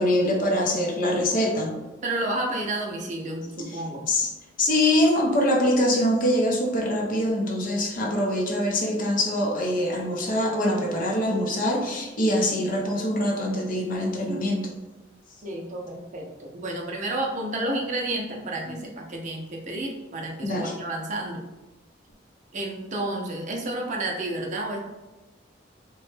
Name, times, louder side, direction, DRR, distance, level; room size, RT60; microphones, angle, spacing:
voice 1, 0.0-1.7 3.6-4.3 4.6-14.7 18.7-18.8 20.4-20.7, left 1 dB, 45° left, 0 dB, 0.6 m, -24 dB
voice 2, 2.0-4.1 15.4-21.4 22.5-24.8, right 1 dB, 40° right, 0 dB, 0.5 m, -31 dB
3.0 x 2.1 x 3.1 m, 1.1 s
head